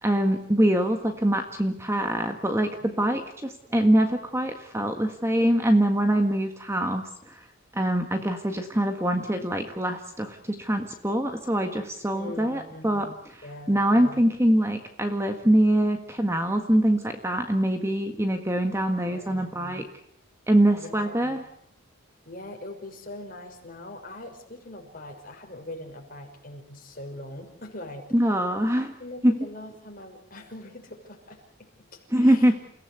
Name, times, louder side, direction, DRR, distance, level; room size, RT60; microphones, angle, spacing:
voice 1, 0.0-7.4 7.7-13.4 13.7-19.8 20.5-21.4 28.1-28.9 29.2-29.3 32.1-32.6, right 1 dB, 10° right, 6 dB, 1.6 m, -24 dB
voice 2, 2.8-3.1 12.1-13.2 13.4-14.2 19.1-19.9 20.7-21.4 22.2-28.4 29.0-32.5, left 1 dB, 40° left, 2 dB, 6.0 m, -42 dB
29.0 x 17.0 x 8.2 m, 0.73 s
head